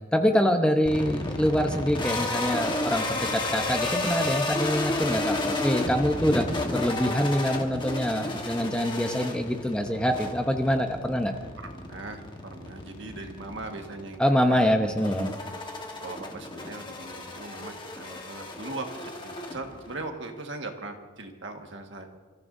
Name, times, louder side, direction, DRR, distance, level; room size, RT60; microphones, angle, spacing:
voice 1, 0.1-11.3 14.2-15.3, equal, 5° left, 4 dB, 0.8 m, -25 dB
sound 1, 0.8-20.0, left 2 dB, 25° left, 1.3 m, -32 dB
voice 2, 11.6-14.7 15.0-15.3 16.0-18.9 19.2-22.1, right 2 dB, 60° right, 3 dB, 1.7 m, -39 dB
30.0 x 14.5 x 2.7 m, 1.3 s
head